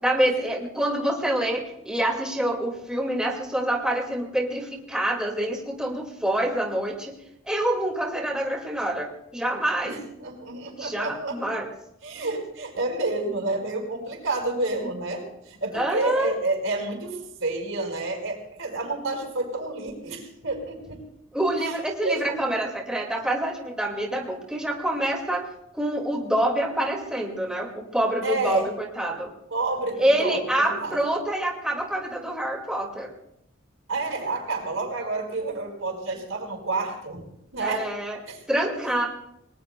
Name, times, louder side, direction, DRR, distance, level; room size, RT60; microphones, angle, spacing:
voice 1, 0.0-7.1 7.5-10.0 10.8-11.7 15.7-16.3 21.3-25.5 25.7-29.3 30.0-33.1 37.6-38.2 38.5-39.1, right 1 dB, 5° right, 0 dB, 2.0 m, -26 dB
voice 2, 9.9-11.4 12.0-21.0 21.6-22.3 28.2-28.7 29.5-31.0 33.9-37.2 37.5-37.9 38.3-38.4, right 2 dB, 75° right, 2 dB, 4.8 m, -29 dB
29.5 x 19.0 x 2.2 m, 0.80 s
head